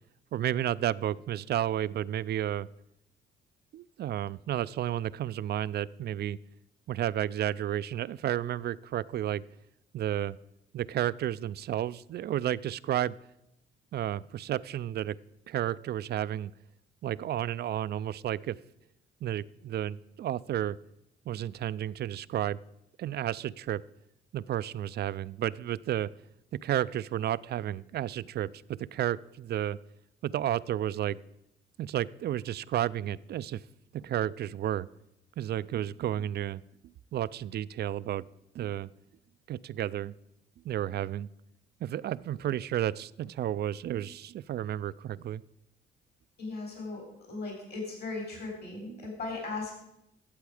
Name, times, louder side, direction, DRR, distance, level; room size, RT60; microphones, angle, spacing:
voice 1, 0.3-2.7 3.7-6.4 6.9-9.4 9.9-10.4 10.7-13.1 13.9-15.2 15.5-16.5 17.0-18.6 19.2-20.8 21.3-22.6 23.0-23.8 24.3-26.1 26.6-29.8 30.2-31.2 31.8-33.6 33.9-34.9 35.4-36.6 37.1-38.3 38.5-38.9 39.5-40.1 40.6-41.3 41.8-45.4 48.9-49.1, right 11 dB, 55° right, 19 dB, 0.4 m, -32 dB
voice 2, 46.4-49.7, left 3 dB, 55° left, 1 dB, 3.8 m, -37 dB
12.0 x 7.9 x 4.9 m, 0.83 s
cardioid pair, 90°, 20 cm